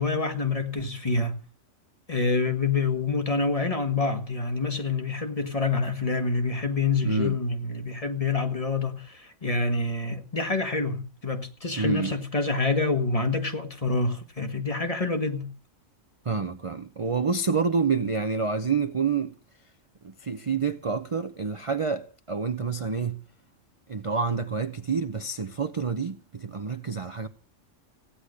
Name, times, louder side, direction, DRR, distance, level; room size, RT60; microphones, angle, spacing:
voice 1, 0.0-1.4 2.1-15.5, left 3 dB, 30° left, 1.5 m, -27 dB
voice 2, 7.0-7.3 11.8-12.1 16.3-19.3 20.0-23.2 23.9-27.3, right 5 dB, 35° right, 0.6 m, -28 dB
16.0 x 10.0 x 6.4 m
omnidirectional pair, 1.3 m